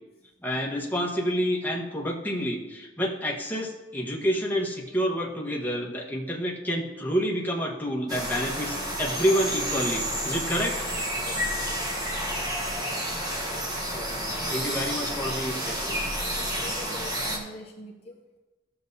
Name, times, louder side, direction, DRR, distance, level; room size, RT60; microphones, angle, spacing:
voice 1, 0.4-10.8 12.9-13.0 13.8-16.0, equal, 10° left, -2 dB, 1.1 m, -29 dB
sound 1, 8.1-17.4, equal, 20° right, 1.3 m, -30 dB
voice 2, 16.3-18.4, equal, 30° left, 0 dB, 0.7 m, -44 dB
14.5 x 6.9 x 2.7 m, 1.1 s
head